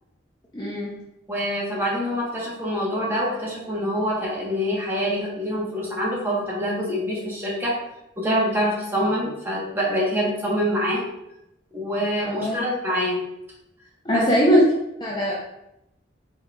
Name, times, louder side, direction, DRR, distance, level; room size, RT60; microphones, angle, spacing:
voice 1, 0.5-0.9 12.2-12.6 14.0-14.6 15.0-15.3, equal, 20° left, -5 dB, 0.6 m, -20 dB
voice 2, 1.3-7.8 8.2-11.0 11.7-13.2 14.1-14.3, equal, 10° right, -6 dB, 1.1 m, -25 dB
4.1 x 4.0 x 2.4 m, 0.84 s
head